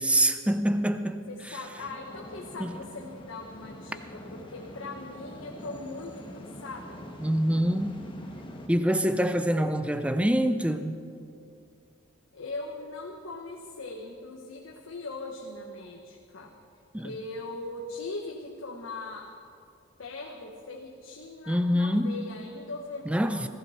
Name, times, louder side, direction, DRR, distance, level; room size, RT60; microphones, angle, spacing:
voice 1, 0.0-1.6 2.6-2.7 7.2-8.0 8.7-11.0 16.9-17.1 21.5-22.2 23.1-23.5, equal, 5° right, 0.6 m, -25 dB
voice 2, 1.3-7.0 12.3-16.5 17.0-19.3 20.0-23.5, left 3 dB, 80° left, 1.3 m, -40 dB
sound 1, 1.8-8.7, left 1 dB, 25° left, 1.3 m, -44 dB
20.0 x 15.0 x 4.3 m
head